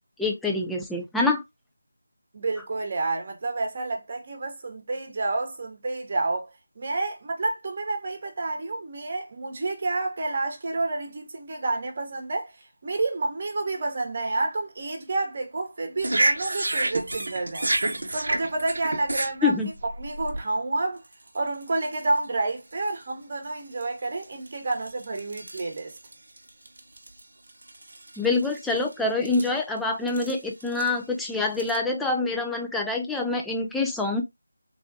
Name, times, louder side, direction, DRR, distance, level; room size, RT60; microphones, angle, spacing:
voice 1, 0.2-1.4 19.4-19.7 28.2-34.2, left 3 dB, ahead, 0.3 m, -26 dB
voice 2, 2.3-6.5 6.8-12.5 12.8-17.7 18.1-19.5 19.8-21.0 21.3-26.0, right 2 dB, 35° right, 0.9 m, -29 dB
sound 1, 16.0-20.4 21.1-21.3 21.6-22.0 22.7-22.9 23.8-23.9 24.2-27.2 27.5-28.9 29.3-29.5 30.1-30.9 31.5-31.8, right 2 dB, 65° right, 0.7 m, -29 dB
3.5 x 2.4 x 2.6 m
figure-of-eight pair, 165°, 0 cm